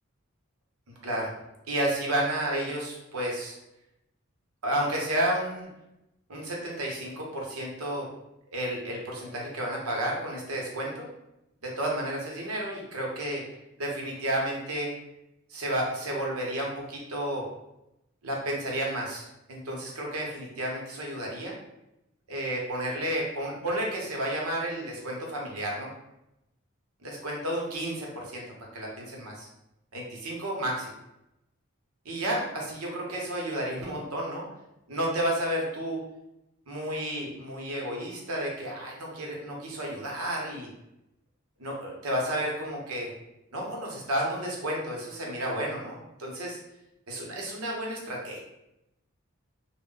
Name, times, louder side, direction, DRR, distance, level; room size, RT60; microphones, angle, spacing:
voice 1, 0.9-1.3 1.7-3.6 4.6-5.7 6.3-8.1 8.5-11.1 11.6-13.4 13.8-14.9 15.5-17.5 18.2-21.5 22.3-25.9 27.0-28.4 28.7-29.5 29.9-30.9 32.0-34.5 34.9-36.0 36.7-40.7 41.6-43.1 43.5-46.6 47.1-48.4, right 1 dB, 85° right, -2 dB, 0.8 m, -31 dB
2.1 x 2.0 x 3.7 m, 0.88 s
head